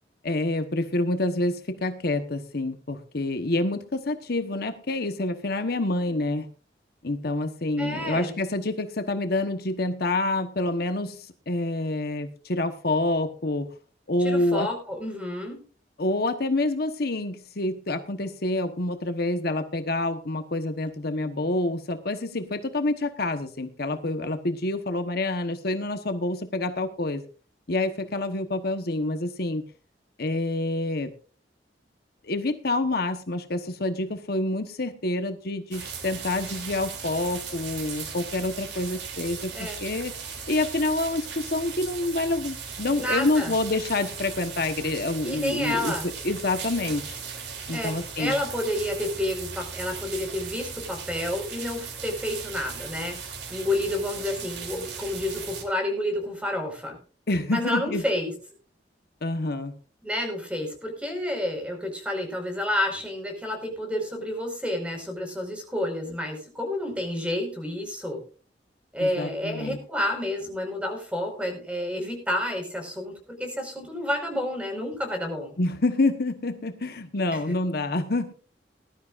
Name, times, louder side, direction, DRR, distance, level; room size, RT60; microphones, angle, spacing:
voice 1, 0.2-6.5 7.0-13.7 14.1-14.7 16.0-27.2 27.7-29.6 30.2-31.1 32.2-47.2 47.7-48.3 57.3-58.0 59.2-59.7 69.0-69.8 75.6-78.3, left 2 dB, 60° left, 7 dB, 1.2 m, -27 dB
voice 2, 7.8-8.4 14.2-15.6 39.5-39.8 43.0-43.5 45.2-46.1 47.7-53.2 53.5-57.0 57.5-58.3 60.0-68.2 68.9-75.5 77.3-77.5, left 1 dB, 5° right, 3 dB, 5.0 m, -30 dB
sound 1, 35.7-55.6, right 6 dB, 80° right, 3.1 m, -38 dB
20.0 x 12.5 x 2.5 m, 0.38 s
head